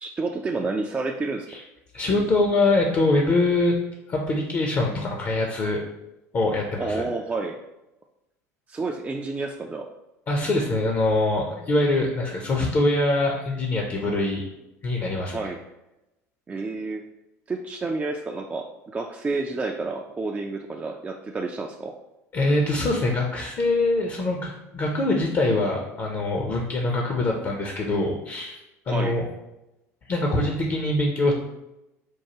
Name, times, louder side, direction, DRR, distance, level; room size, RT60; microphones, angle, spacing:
voice 1, 0.0-1.5 6.8-7.6 8.7-9.9 15.3-15.6 16.5-17.0 17.5-21.9 28.9-29.2, right 3 dB, 15° right, 2 dB, 0.3 m, -30 dB
voice 2, 1.9-3.8 4.1-5.8 6.3-7.0 10.3-14.4 14.8-15.5 22.3-28.6 28.9-29.2 30.1-31.3, left 2 dB, 35° left, 1 dB, 0.6 m, -23 dB
4.6 x 2.3 x 2.9 m, 0.94 s
figure-of-eight pair, 65°, 9 cm